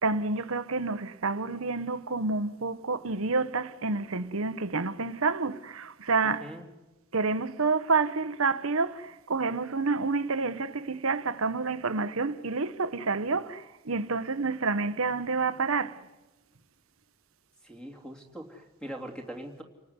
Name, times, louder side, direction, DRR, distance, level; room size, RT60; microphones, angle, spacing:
voice 1, 0.0-6.5 7.1-16.0, right 4 dB, 75° right, 1.0 m, -29 dB
voice 2, 17.6-19.6, right 1 dB, 5° left, 2.9 m, -41 dB
30.0 x 19.0 x 9.6 m
head